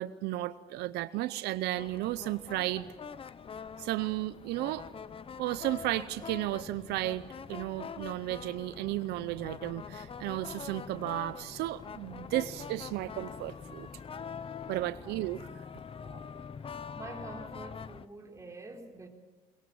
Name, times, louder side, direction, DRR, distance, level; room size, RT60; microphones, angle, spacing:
voice 1, 0.0-2.9 3.8-4.9 5.4-13.9 14.7-15.5, right 16 dB, 85° right, 0.7 m, -34 dB
Trombón Homenaje Gabriel Garcia Marquez I, 1.8-18.1, left 6 dB, 35° left, 0.8 m, -44 dB
voice 2, 15.9-16.3 16.9-19.1, right 2 dB, 20° right, 4.2 m, -46 dB
22.5 x 21.0 x 7.2 m
cardioid pair, 105°, 17 cm